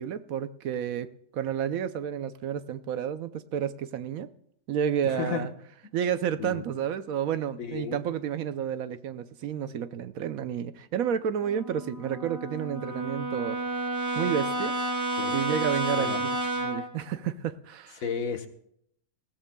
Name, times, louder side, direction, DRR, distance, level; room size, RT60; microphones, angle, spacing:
voice 1, 0.0-4.3 4.7-5.5 5.9-13.6 14.2-14.7 15.3-18.0, right 8 dB, 75° right, 12 dB, 1.1 m, -31 dB
voice 2, 5.0-5.4 6.4-6.6 7.6-8.0 15.2-15.3 16.0-16.2 18.0-18.5, left 6 dB, 65° left, 6 dB, 1.6 m, -32 dB
Brass instrument, 11.4-16.9, right 1 dB, 15° right, 1.1 m, -31 dB
20.0 x 15.5 x 2.3 m, 0.71 s
omnidirectional pair, 1.6 m